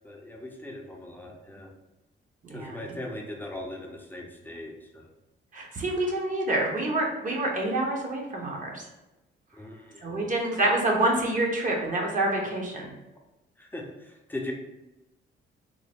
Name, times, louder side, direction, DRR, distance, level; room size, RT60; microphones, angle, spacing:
voice 1, 0.0-1.7 2.5-5.1 9.6-10.1 13.6-14.5, left 1 dB, 10° left, 0 dB, 0.6 m, -39 dB
voice 2, 2.4-2.8 5.5-8.8 10.0-12.9, right 1 dB, 40° right, 0 dB, 1.0 m, -27 dB
3.7 x 2.1 x 3.5 m, 1.0 s
cardioid pair, 90°, 20 cm